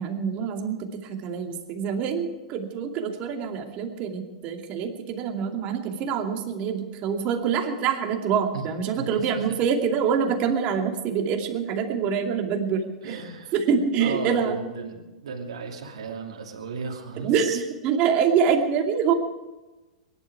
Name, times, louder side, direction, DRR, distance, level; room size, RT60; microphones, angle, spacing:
voice 1, 0.0-13.2 13.5-14.5 17.2-19.1, right 7 dB, 40° right, 3 dB, 2.5 m, -25 dB
voice 2, 9.0-9.4 13.0-13.5 14.0-17.6, right 5 dB, 65° right, 1 dB, 2.8 m, -35 dB
23.0 x 11.5 x 4.8 m, 1.1 s
figure-of-eight pair, 100°, 3 cm